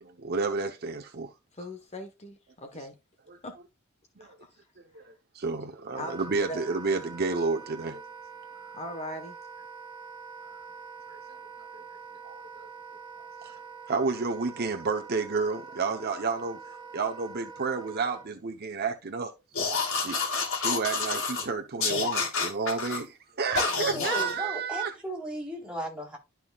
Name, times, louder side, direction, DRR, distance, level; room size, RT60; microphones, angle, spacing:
voice 1, 0.0-1.3 2.8-2.9 3.3-3.4 4.2-4.4 4.9-8.0 11.1-11.2 11.8-11.9 12.2-12.7 13.4-13.6 13.9-19.3 20.0-20.2 20.5-24.9, right 4 dB, 50° right, 0.9 m, -31 dB
voice 2, 1.5-3.0 3.4-3.6 4.2-4.5 6.0-6.2 6.5-6.6 8.7-9.4, left 1 dB, 30° left, 1.2 m, -39 dB
Wind instrument woodwind instrument, 6.0-18.3, right 5 dB, 20° right, 1.3 m, -45 dB
sound 1, 19.5-21.5 21.8-23.0 23.6-24.3, left 4 dB, 65° left, 3.3 m, -29 dB
voice 3, 23.5-26.2, equal, 5° right, 3.8 m, -36 dB
12.0 x 5.7 x 2.4 m
head